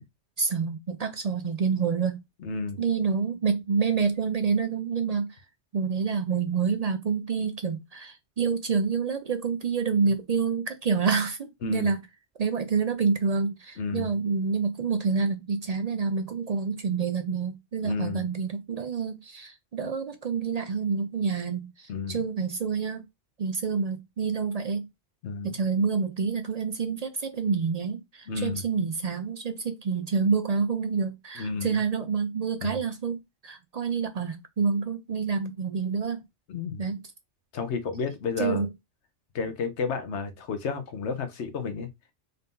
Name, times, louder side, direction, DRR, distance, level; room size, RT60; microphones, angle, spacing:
voice 1, 0.4-2.2 2.8-5.3 5.7-12.0 12.4-23.0 23.4-24.8 25.4-36.2 36.8-37.0 38.4-38.7, right 5 dB, 60° right, 0.4 m, -28 dB
voice 2, 2.4-2.8 11.6-11.9 13.8-14.1 17.8-18.3 21.9-22.2 25.2-25.6 28.3-28.6 31.4-31.8 32.6-32.8 36.5-36.9 37.5-38.7 39.3-41.9, left 4 dB, 75° left, 1.1 m, -31 dB
4.0 x 2.7 x 3.6 m
omnidirectional pair, 1.2 m